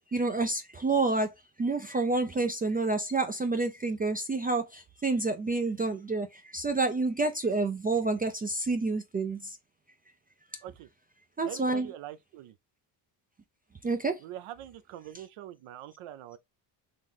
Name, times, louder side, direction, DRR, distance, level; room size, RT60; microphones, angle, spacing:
voice 1, 0.1-1.3 1.6-9.6 11.4-11.9 13.8-14.2, right 3 dB, 20° right, 0.3 m, -29 dB
voice 2, 11.4-12.6 14.2-16.4, right 12 dB, 80° right, 0.7 m, -44 dB
3.9 x 3.2 x 3.7 m
cardioid pair, 135°, 50 cm